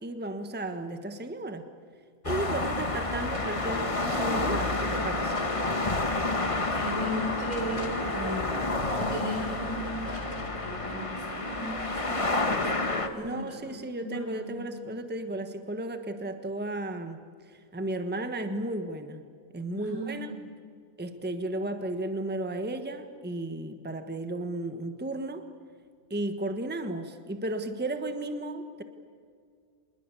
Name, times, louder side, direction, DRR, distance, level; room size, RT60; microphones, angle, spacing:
voice 1, 0.0-1.6 2.2-5.4 13.2-17.2 17.5-19.2 19.5-20.4 21.0-25.4 26.1-28.8, right 1 dB, 10° right, 8 dB, 1.3 m, -34 dB
sound 1, 2.2-13.1, left 2 dB, 25° left, 1.5 m, -29 dB
voice 2, 6.7-8.5 8.9-13.7 14.0-15.3 19.7-20.4, equal, 80° right, 1 dB, 6.6 m, -37 dB
26.5 x 20.5 x 8.4 m, 2.2 s
omnidirectional pair, 1.4 m